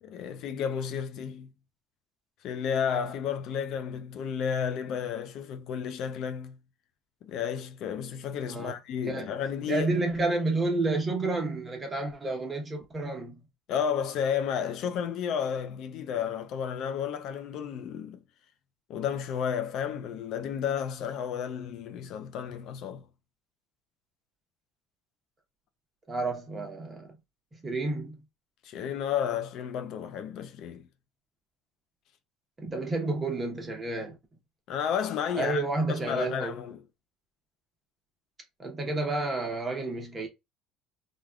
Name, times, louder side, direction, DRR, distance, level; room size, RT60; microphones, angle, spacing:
voice 1, 0.0-1.5 2.4-6.5 7.2-9.9 13.7-18.2 18.9-23.0 28.6-30.9 34.7-35.6 35.9-36.8, left 8 dB, 55° left, 0.4 m, -32 dB
voice 2, 9.7-13.4 26.1-27.1 27.6-28.1 32.6-34.2 35.3-36.6 38.6-40.3, right 2 dB, 20° right, 1.0 m, -30 dB
3.4 x 2.4 x 2.3 m
cardioid pair, 135°, 0 cm